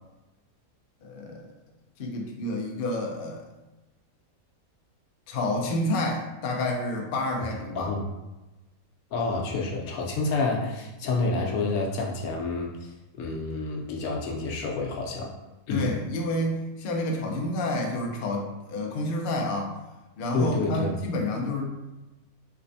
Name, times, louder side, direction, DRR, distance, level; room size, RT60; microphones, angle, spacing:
voice 1, 1.0-1.5 2.0-3.4 5.3-7.9 15.7-19.7 20.2-21.7, left 1 dB, 55° left, 1 dB, 0.6 m, -29 dB
voice 2, 9.1-12.9 13.2-15.3 15.7-15.9 20.3-21.0, left 3 dB, 80° left, -1 dB, 1.1 m, -28 dB
3.3 x 3.1 x 2.6 m, 1.1 s
omnidirectional pair, 1.5 m